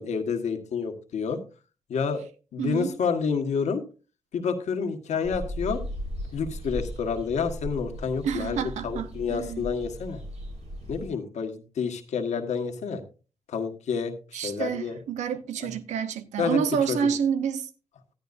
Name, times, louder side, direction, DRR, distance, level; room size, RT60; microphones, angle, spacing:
voice 1, 0.0-1.4 1.9-2.2 2.5-3.8 4.3-5.8 6.3-10.2 10.9-13.0 13.5-15.0 15.6-15.7 16.4-16.6 16.9-17.0, left 6 dB, 80° left, 1.4 m, -29 dB
voice 2, 2.6-2.9 8.2-9.7 14.3-17.7, right 7 dB, 90° right, 0.8 m, -28 dB
sound 1, 5.2-11.1, equal, 65° right, 4.3 m, -37 dB
13.5 x 11.0 x 2.6 m
supercardioid pair, 45°, 12 cm